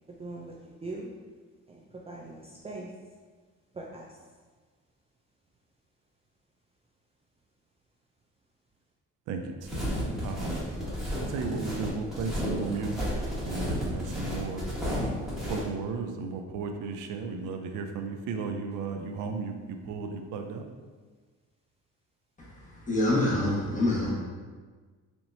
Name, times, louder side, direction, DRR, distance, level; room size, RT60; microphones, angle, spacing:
voice 1, 0.2-0.5 0.8-1.1 1.7-2.9 3.7-4.2, right 2 dB, 20° right, 0.4 m, -41 dB
voice 2, 9.3-9.9 10.2-10.6 11.3-13.1 13.4-14.6 15.5-20.6, right 5 dB, 90° right, 0.5 m, -35 dB
sound 1, 9.6-15.6, equal, ahead, 1.3 m, -32 dB
voice 3, 22.4-24.1, left 1 dB, 25° left, 1.4 m, -26 dB
4.4 x 2.9 x 2.7 m
cardioid pair, 90°, 30 cm